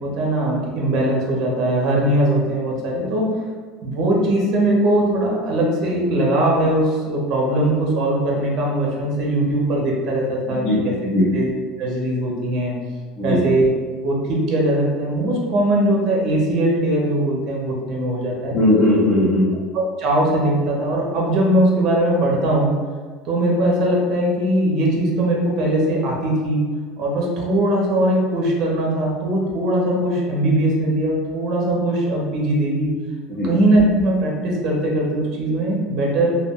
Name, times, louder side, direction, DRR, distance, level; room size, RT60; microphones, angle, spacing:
voice 1, 0.0-3.3 3.8-10.9 11.3-11.5 11.8-12.7 13.2-13.7 14.0-18.5 19.7-22.7 23.2-26.6 27.0-32.9 33.4-36.3, right 1 dB, 40° right, -2 dB, 0.6 m, -20 dB
voice 2, 10.5-11.2 13.2-13.4 18.5-19.6 33.3-33.5, left 1 dB, 35° left, -7 dB, 0.6 m, -18 dB
2.2 x 2.1 x 3.5 m, 1.5 s
cardioid pair, 165°, 0 cm